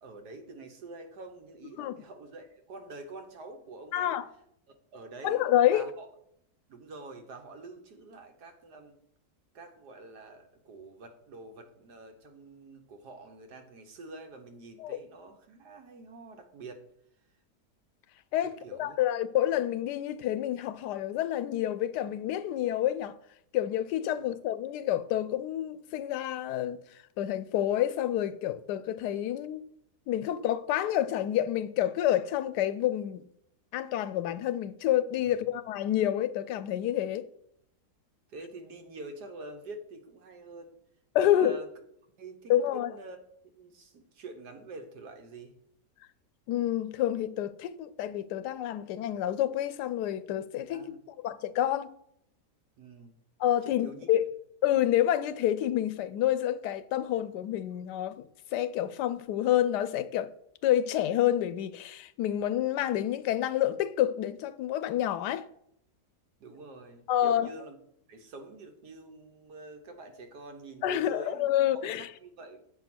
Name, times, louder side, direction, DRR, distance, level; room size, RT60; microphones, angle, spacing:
voice 1, 0.0-4.2 4.9-6.1 6.7-9.0 9.5-16.9 18.4-19.0 38.3-40.7 41.3-41.7 42.2-43.2 43.5-45.5 50.7-51.0 52.8-53.1 53.6-54.1 66.4-67.8 68.1-71.5 72.0-72.6, right 2 dB, 80° right, 1.6 m, -46 dB
voice 2, 3.9-4.3 5.2-5.8 14.8-15.0 18.3-23.1 23.5-26.8 27.2-29.7 30.1-33.2 33.7-37.2 41.1-41.6 42.5-42.9 46.5-50.9 51.2-51.9 53.4-54.3 54.6-60.3 60.6-65.5 67.1-67.5 70.8-72.1, left 12 dB, 85° left, 1.2 m, -28 dB
8.1 x 4.5 x 6.0 m
omnidirectional pair, 1.7 m